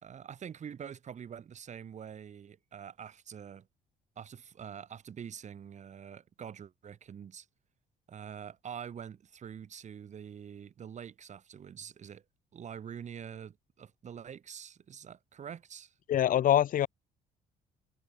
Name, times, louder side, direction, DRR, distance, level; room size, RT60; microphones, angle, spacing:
voice 1, 0.0-3.7 4.2-7.5 8.1-12.2 12.5-15.9, right 8 dB, 45° right, 4.3 m, -45 dB
voice 2, 16.1-16.9, left 11 dB, 55° left, 1.3 m, -24 dB
cardioid pair, 110°, 17 cm